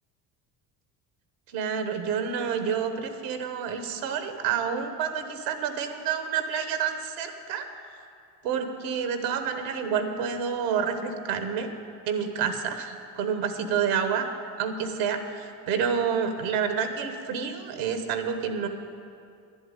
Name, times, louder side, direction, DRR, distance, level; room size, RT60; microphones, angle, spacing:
voice 1, 1.5-7.7 8.4-11.7 12.1-14.3 14.6-18.7, right 7 dB, 85° right, 7 dB, 1.2 m, -28 dB
11.0 x 7.9 x 8.9 m, 2.4 s
supercardioid pair, 70°, 44 cm